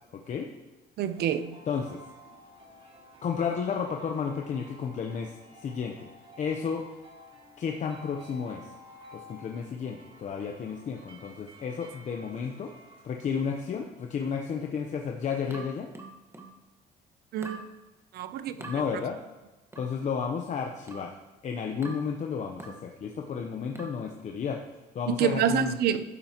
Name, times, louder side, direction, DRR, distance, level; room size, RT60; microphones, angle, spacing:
voice 1, 0.1-0.5 1.7-2.0 3.2-6.1 6.4-6.8 7.6-8.7 9.1-12.7 13.0-15.9 18.6-19.2 19.7-21.1 21.4-24.6 24.9-25.8, left 6 dB, 45° left, 2 dB, 0.9 m, -32 dB
voice 2, 1.0-1.6 17.3-17.6 18.1-18.5 25.1-26.0, right 9 dB, 70° right, 12 dB, 0.7 m, -27 dB
sound 1, 1.1-13.8, equal, 35° right, 2.5 m, -52 dB
sound 2, 15.5-16.6 17.4-17.7 18.6-18.8 19.7-20.0 20.9-21.2 21.8-22.1 22.6-22.9 23.7-24.0, right 2 dB, 15° right, 1.4 m, -44 dB
12.0 x 8.9 x 3.0 m, 1.1 s
cardioid pair, 110°, 17 cm